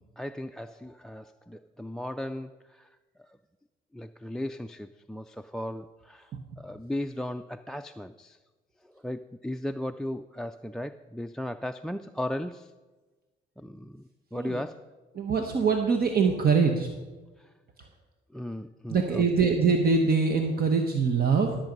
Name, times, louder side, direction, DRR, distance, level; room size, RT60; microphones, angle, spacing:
voice 1, 0.0-3.4 3.9-8.4 8.8-12.7 13.6-14.9 17.4-17.5 18.3-19.4, left 1 dB, 5° left, 12 dB, 0.3 m, -37 dB
voice 2, 15.1-16.9 18.9-21.6, right 5 dB, 50° right, 4 dB, 1.2 m, -24 dB
13.5 x 7.4 x 5.3 m, 1.3 s
cardioid pair, 90°, 20 cm